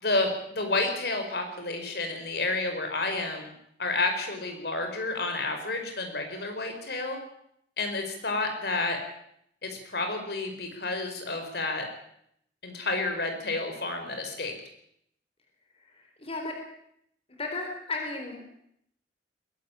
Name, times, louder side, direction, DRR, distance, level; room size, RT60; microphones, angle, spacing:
voice 1, 0.0-3.5 3.8-7.2 7.8-9.0 9.6-11.8 12.6-14.5, left 2 dB, 65° left, 5 dB, 4.7 m, -30 dB
voice 2, 15.8-16.5 17.4-18.6, left 3 dB, 35° left, 2 dB, 3.8 m, -35 dB
21.5 x 12.5 x 10.0 m, 0.72 s
head